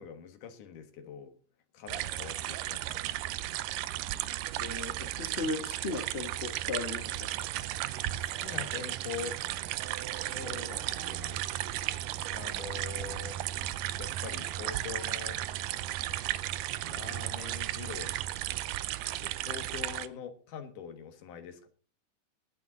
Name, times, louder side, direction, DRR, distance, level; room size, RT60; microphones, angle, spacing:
voice 1, 0.0-1.3 1.7-3.2 8.2-9.4 10.0-11.4 12.3-13.4 14.0-15.4 16.8-18.1 19.2-21.7, left 7 dB, 75° left, 8 dB, 3.0 m, -44 dB
sound 1, 1.9-20.1, right 14 dB, 90° right, 2.3 m, -35 dB
voice 2, 4.6-7.3, left 3 dB, 40° left, 7 dB, 0.9 m, -36 dB
18.5 x 9.2 x 3.9 m, 0.40 s
omnidirectional pair, 3.7 m